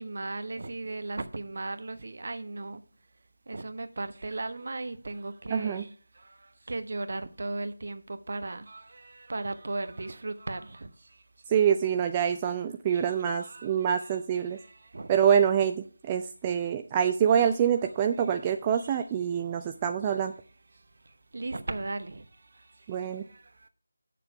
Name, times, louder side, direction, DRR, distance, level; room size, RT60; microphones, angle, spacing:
voice 1, 0.0-2.8 3.5-11.2 12.9-15.1 18.2-18.3 18.7-19.0 19.4-19.7 20.7-23.7, right 2 dB, 50° right, 0.9 m, -38 dB
voice 2, 5.5-5.8 11.5-14.6 15.1-20.3 22.9-23.2, right 8 dB, 15° right, 0.3 m, -26 dB
8.6 x 6.8 x 4.9 m
figure-of-eight pair, 165°, 0 cm